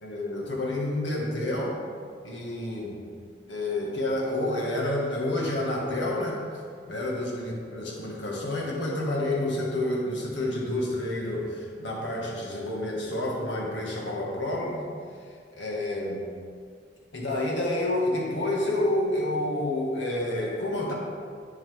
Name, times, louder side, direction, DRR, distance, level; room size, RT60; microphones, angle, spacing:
voice 1, 0.0-1.8 2.2-3.0 3.5-6.4 6.9-14.8 15.5-16.3 17.1-20.9, left 1 dB, 80° left, -3 dB, 1.7 m, -29 dB
9.3 x 7.7 x 3.5 m, 2.1 s
head